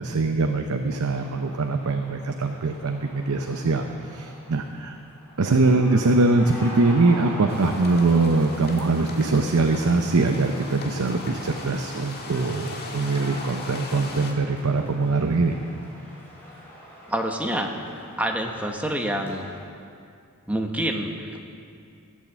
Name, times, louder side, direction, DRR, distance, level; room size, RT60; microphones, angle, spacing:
voice 1, 0.0-5.0 5.4-15.6, right 3 dB, 80° right, 5 dB, 0.7 m, -22 dB
sound 1, 1.1-19.6, equal, 10° left, 3.5 m, -43 dB
sound 2, 7.5-14.3, left 3 dB, 45° left, 1.6 m, -39 dB
voice 2, 17.1-17.7 18.2-19.4 20.5-21.4, right 1 dB, 5° right, 2 dB, 1.1 m, -27 dB
15.5 x 8.5 x 7.4 m, 2.4 s
head